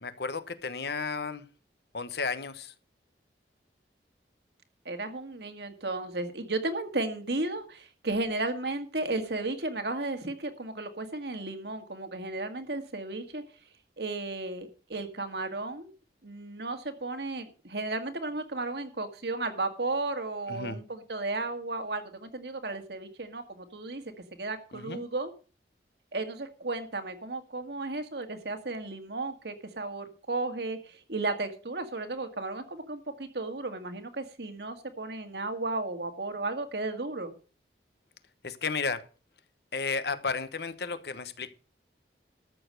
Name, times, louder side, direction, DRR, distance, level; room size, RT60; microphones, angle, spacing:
voice 1, 0.0-1.4 1.9-2.7 20.5-20.8 24.7-25.0 38.4-39.0 39.7-41.5, left 4 dB, 65° left, 1.0 m, -33 dB
voice 2, 4.9-13.4 14.0-15.9 16.2-24.0 24.4-25.3 26.1-37.3, right 2 dB, 70° right, 1.9 m, -34 dB
13.5 x 6.9 x 6.5 m
head